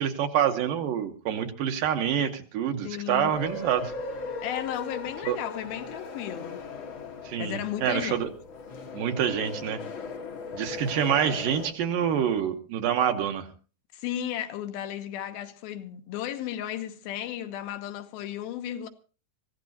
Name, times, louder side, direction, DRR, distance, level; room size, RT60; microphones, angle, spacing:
voice 1, 0.0-3.9 5.3-5.4 7.2-8.3 8.9-9.8 10.5-13.5, right 9 dB, 70° right, 2.5 m, -27 dB
voice 2, 2.8-3.3 4.4-6.6 7.4-8.3 13.9-18.9, left 11 dB, 80° left, 2.8 m, -34 dB
sound 1, 3.3-11.7, left 3 dB, 60° left, 1.3 m, -38 dB
24.0 x 15.5 x 2.8 m
omnidirectional pair, 4.4 m